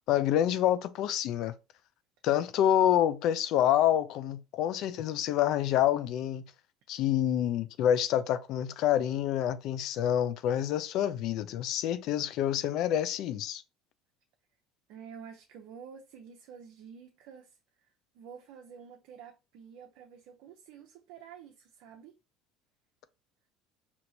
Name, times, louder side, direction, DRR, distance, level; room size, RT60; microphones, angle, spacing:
voice 1, 0.1-1.5 2.2-6.4 6.9-13.6, left 11 dB, 65° left, 0.4 m, -27 dB
voice 2, 14.9-17.6 18.1-22.1, right 7 dB, 70° right, 0.6 m, -49 dB
4.4 x 2.8 x 2.7 m
supercardioid pair, 90°, 0 cm